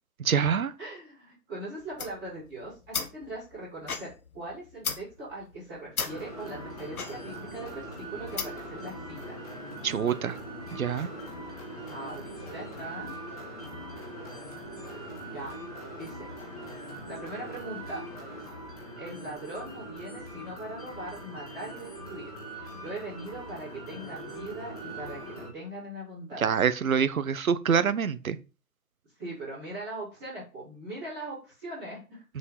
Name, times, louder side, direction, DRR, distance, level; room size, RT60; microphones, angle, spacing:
voice 1, 0.2-0.7 9.8-10.4 10.7-11.1 26.4-28.4, right 7 dB, 60° right, 1.0 m, -26 dB
voice 2, 0.8-9.4 10.9-11.2 11.9-13.1 15.3-15.6 16.0-16.3 17.1-18.1 19.0-22.3 22.7-26.5 29.2-32.2, right 1 dB, ahead, 0.8 m, -40 dB
sound 1, 1.8-8.8, left 5 dB, 65° left, 1.5 m, -38 dB
sound 2, 6.1-25.5, right 1 dB, 25° left, 1.9 m, -41 dB
6.4 x 5.4 x 5.5 m
hypercardioid pair, 165°, 47 cm